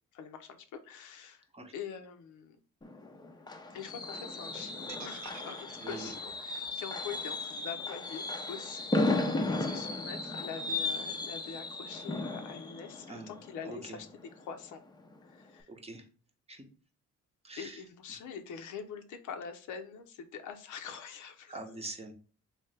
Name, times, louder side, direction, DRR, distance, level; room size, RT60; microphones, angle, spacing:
voice 1, 0.1-1.5 1.7-2.6 3.7-8.9 9.2-14.1 14.4-14.8 15.2-15.7 17.6-21.5, left 7 dB, 80° left, 7 dB, 0.7 m, -44 dB
Fireworks, 2.8-14.5 14.9-15.2 15.4-15.5, left 2 dB, 15° left, 0.5 m, -35 dB
sound 1, 4.9-8.9, right 9 dB, 70° right, 0.6 m, -51 dB
voice 2, 5.8-6.1 13.1-13.3 13.7-14.0 15.7-16.1 16.5-16.6 17.4-17.8 18.1-18.2 21.5-22.1, right 2 dB, 20° right, 4 dB, 0.7 m, -44 dB
3.2 x 2.8 x 3.2 m, 0.40 s
cardioid pair, 90°, 30 cm